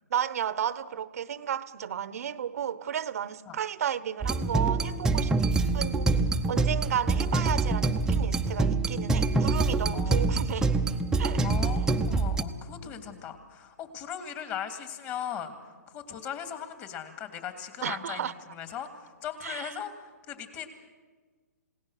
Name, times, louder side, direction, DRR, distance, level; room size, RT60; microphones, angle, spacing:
voice 1, 0.1-5.3 5.7-6.2 6.5-10.8 11.2-11.4 12.8-13.0 17.8-18.3 19.4-19.7, right 9 dB, 60° right, 1.0 m, -33 dB
sound 1, 4.2-12.4, right 3 dB, 5° right, 0.8 m, -26 dB
voice 2, 9.9-10.3 11.4-20.7, left 9 dB, 30° left, 2.7 m, -39 dB
29.5 x 17.5 x 6.6 m
hypercardioid pair, 140°, 9 cm